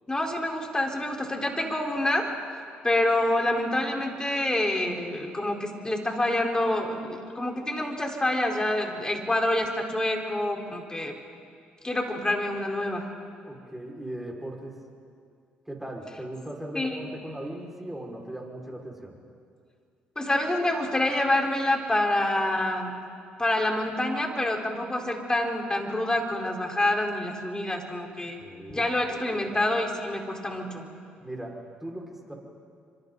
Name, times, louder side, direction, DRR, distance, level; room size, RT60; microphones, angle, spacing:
voice 1, 0.1-2.3 2.8-11.1 11.8-13.1 16.7-17.0 20.2-22.9 23.4-28.4 28.7-30.9, left 1 dB, 20° left, 1 dB, 4.4 m, -27 dB
voice 2, 13.4-14.8 15.7-19.2 28.4-29.5 31.2-32.3, right 1 dB, 5° right, -1 dB, 5.4 m, -39 dB
29.0 x 26.0 x 4.1 m, 2.3 s
supercardioid pair, 60°, 4 cm